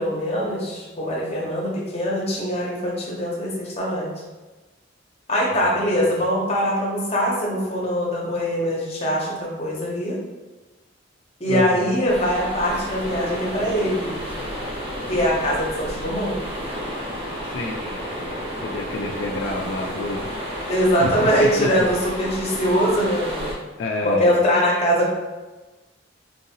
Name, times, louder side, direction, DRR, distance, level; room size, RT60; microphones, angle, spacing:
voice 1, 0.0-4.1 5.3-10.2 11.4-14.1 15.1-16.4 20.7-23.5 24.0-25.1, equal, 35° left, -3 dB, 0.8 m, -22 dB
voice 2, 11.5-12.0 17.4-20.2 21.0-21.7 23.8-24.4, left 2 dB, 70° left, 0 dB, 0.3 m, -29 dB
sound 1, 12.1-23.5, equal, 30° right, 0.9 m, -31 dB
3.7 x 2.6 x 2.7 m, 1.2 s
head